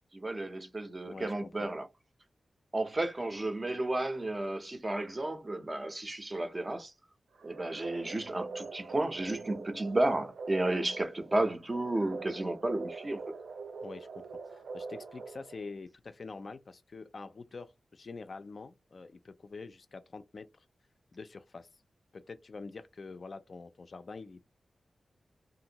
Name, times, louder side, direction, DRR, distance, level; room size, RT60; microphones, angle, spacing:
voice 1, 0.1-1.9 2.7-6.9 7.4-13.2, right 2 dB, 25° right, 0.5 m, -32 dB
voice 2, 1.0-1.7 13.8-20.5 21.1-21.7 22.1-24.4, left 4 dB, 45° left, 0.3 m, -46 dB
sound 1, 7.4-15.8, right 4 dB, 75° right, 0.4 m, -44 dB
3.0 x 2.5 x 2.8 m
wide cardioid pair, 145°, 0 cm